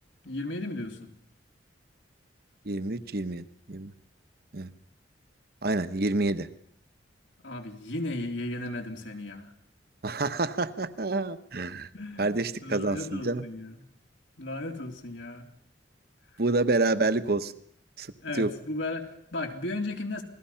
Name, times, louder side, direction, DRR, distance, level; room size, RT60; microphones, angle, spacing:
voice 1, 0.2-1.1 7.4-9.5 11.9-13.9 14.4-15.5 16.3-16.4 18.2-20.2, left 2 dB, 85° left, 2 dB, 3.5 m, -35 dB
voice 2, 2.7-3.9 4.5-4.7 5.6-6.5 10.0-11.9 12.2-13.5 16.4-17.5 18.0-18.1 18.3-18.5, right 2 dB, 55° right, 12 dB, 1.0 m, -28 dB
27.5 x 20.0 x 5.7 m, 0.68 s
head